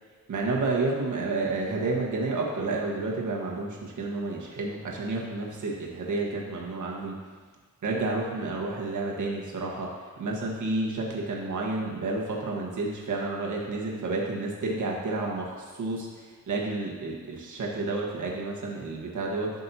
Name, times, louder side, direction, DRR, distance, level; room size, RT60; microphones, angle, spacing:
voice 1, 0.3-7.1 7.8-19.6, right 3 dB, 75° right, -2 dB, 1.5 m, -30 dB
12.0 x 5.4 x 2.9 m, 1.5 s
wide cardioid pair, 125°, 30 cm